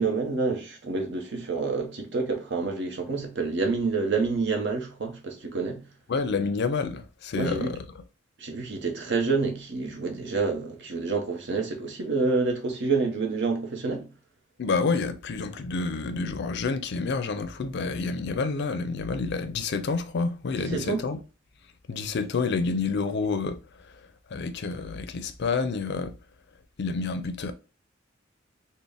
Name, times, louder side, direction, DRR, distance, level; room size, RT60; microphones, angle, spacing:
voice 1, 0.0-5.9 7.4-7.8 8.4-14.1 20.6-21.0, right 4 dB, 65° right, 0.9 m, -28 dB
voice 2, 6.1-7.8 14.6-21.2 21.9-26.2 26.8-27.5, left 4 dB, 60° left, 0.4 m, -29 dB
4.0 x 2.1 x 3.4 m
head